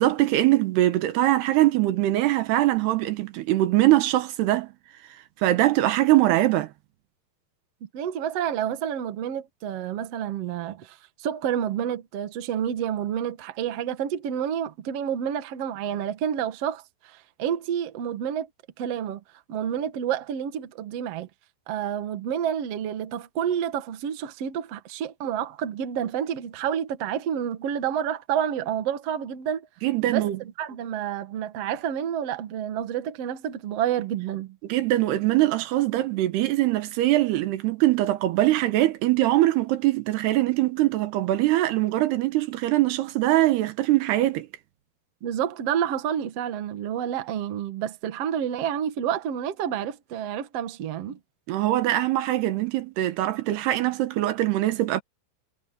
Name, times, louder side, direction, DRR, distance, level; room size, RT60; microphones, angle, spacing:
voice 1, 0.0-4.7 5.4-6.7 29.8-30.4 34.7-44.5 51.5-55.0, right 15 dB, 80° right, 3.1 m, -22 dB
voice 2, 7.8-18.5 18.8-19.2 19.5-21.3 21.7-29.7 30.1-34.6 45.2-51.2, right 9 dB, 55° right, 1.8 m, -29 dB
omnidirectional pair, 4.8 m